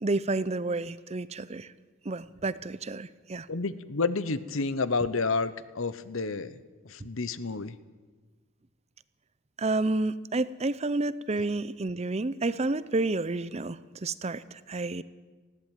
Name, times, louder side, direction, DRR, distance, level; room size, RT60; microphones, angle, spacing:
voice 1, 0.0-1.7 2.0-3.5 9.6-15.0, right 2 dB, 30° right, 16 dB, 0.6 m, -30 dB
voice 2, 3.5-6.6 6.9-7.7, left 4 dB, 65° left, 15 dB, 1.0 m, -30 dB
19.5 x 15.5 x 9.1 m, 1.3 s
head